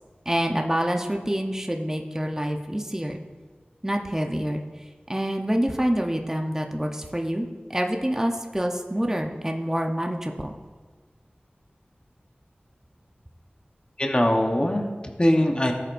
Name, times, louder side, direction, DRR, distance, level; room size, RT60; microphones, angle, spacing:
voice 1, 0.3-3.2 3.8-4.6 5.1-10.5, equal, 15° right, 2 dB, 0.8 m, -27 dB
voice 2, 14.0-15.7, left 1 dB, 30° left, 2 dB, 1.0 m, -22 dB
17.5 x 7.8 x 2.6 m, 1.4 s
wide cardioid pair, 55°, 3 cm